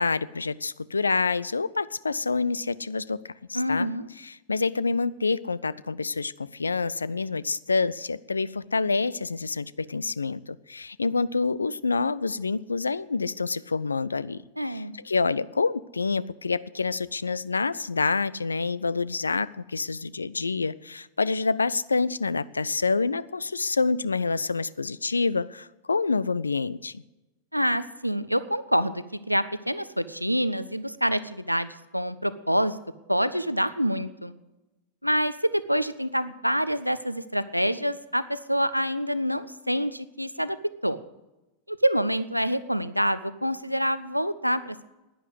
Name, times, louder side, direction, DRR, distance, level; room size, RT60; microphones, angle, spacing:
voice 1, 0.0-3.9 4.2-14.4 14.7-27.0, left 4 dB, 75° left, 20 dB, 0.4 m, -27 dB
voice 2, 3.5-4.1 14.6-15.0 27.5-31.7 31.9-32.8 33.1-34.3 35.0-40.6 40.8-41.0 41.7-44.8, equal, 90° right, 15 dB, 0.6 m, -26 dB
11.0 x 10.0 x 8.0 m, 1.0 s
figure-of-eight pair, 90°, 0 cm